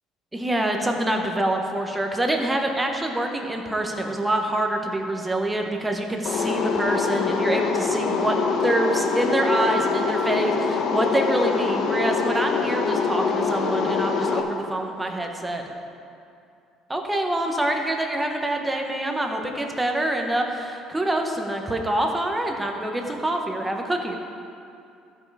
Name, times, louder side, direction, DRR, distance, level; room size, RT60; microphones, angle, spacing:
voice 1, 0.3-8.4 8.6-15.6 16.9-24.2, right 1 dB, 10° right, 3 dB, 0.8 m, -26 dB
sound 1, 6.2-14.4, left 5 dB, 45° left, 0.8 m, -24 dB
14.0 x 5.5 x 4.7 m, 2.6 s
cardioid pair, 160°, 0 cm